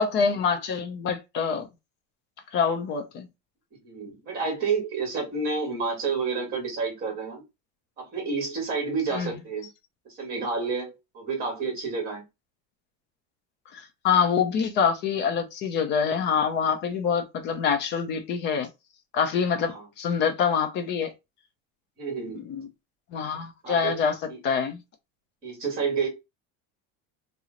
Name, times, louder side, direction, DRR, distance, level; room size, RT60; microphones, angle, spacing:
voice 1, 0.0-1.7 2.5-3.3 9.1-9.3 13.7-18.7 19.1-21.1 22.5-22.7 23.1-24.8, left 6 dB, 30° left, 0.4 m, -25 dB
voice 2, 3.8-7.4 8.0-9.7 10.2-12.2 19.7-19.8 22.0-22.5 23.6-24.0 24.3-24.4 25.4-26.1, right 4 dB, 25° right, 1.3 m, -29 dB
2.9 x 2.1 x 3.6 m
cardioid pair, 175°, 37 cm